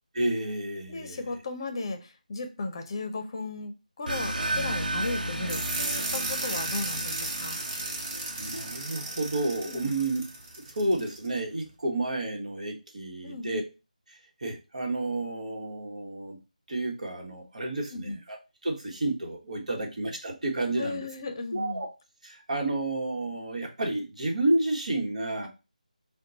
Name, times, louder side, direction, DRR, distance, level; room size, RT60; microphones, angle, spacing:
voice 1, 0.1-1.2 8.4-10.2 10.7-13.6 14.4-16.4 16.7-18.4 18.6-21.1 21.5-21.9 22.2-25.5, right 2 dB, 55° right, 2 dB, 1.3 m, -30 dB
voice 2, 0.9-7.6 9.6-10.0 13.2-13.6 17.9-18.2 19.7-19.8 20.8-21.8, left 3 dB, 35° left, 6 dB, 0.7 m, -36 dB
sound 1, 4.1-10.3, right 1 dB, 80° right, 0.9 m, -34 dB
sound 2, 5.5-11.3, right 2 dB, 20° right, 0.6 m, -35 dB
4.3 x 2.3 x 3.9 m, 0.29 s
figure-of-eight pair, 160°, 4 cm